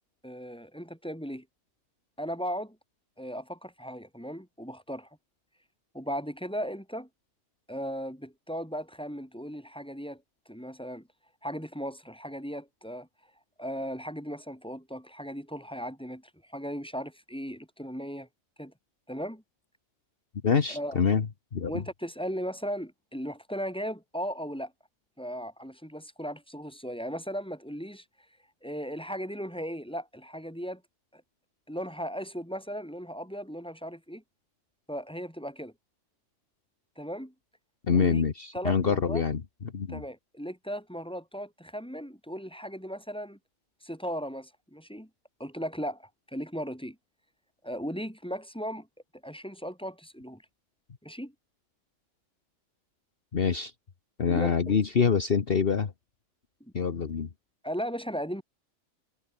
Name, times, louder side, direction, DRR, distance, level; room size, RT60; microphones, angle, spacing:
voice 1, 0.2-1.4 2.2-2.8 3.2-5.1 5.9-7.1 7.7-10.2 10.5-11.1 11.4-13.1 13.6-16.2 16.5-18.3 18.6-18.7 19.1-19.4 20.7-21.0 21.7-24.7 25.2-28.0 28.6-30.8 31.1-31.2 31.7-34.2 34.9-35.7 37.0-37.3 37.9-38.2 38.5-39.2 39.9-43.4 43.8-45.1 45.4-47.0 47.6-48.9 49.2-50.4 51.0-51.3 54.3-54.8 56.6-56.7 57.6-58.4, equal, 5° left, 4.5 m, -37 dB
voice 2, 20.4-21.3 21.5-21.7 37.9-39.4 39.7-40.0 53.3-53.7 54.2-55.9 56.7-57.3, left 6 dB, 50° left, 1.4 m, -25 dB
omnidirectional pair, 1.3 m